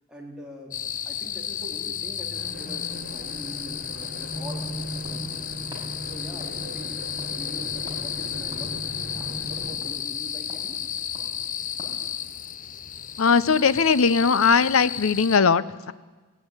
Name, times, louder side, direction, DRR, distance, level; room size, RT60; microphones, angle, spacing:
voice 1, 0.1-0.7 1.0-5.5 5.8-6.9 7.3-8.8 9.1-10.8, right 1 dB, 5° right, -3 dB, 3.8 m, -43 dB
sound 1, 0.7-15.4, left 9 dB, 40° left, 0.6 m, -33 dB
sound 2, 2.3-9.7, right 1 dB, 50° right, 4.4 m, -38 dB
sound 3, 5.0-12.1, right 1 dB, 20° right, 4.9 m, -48 dB
voice 2, 13.2-15.9, left 5 dB, 85° left, 16 dB, 0.7 m, -19 dB
17.0 x 16.5 x 9.7 m, 1.3 s
head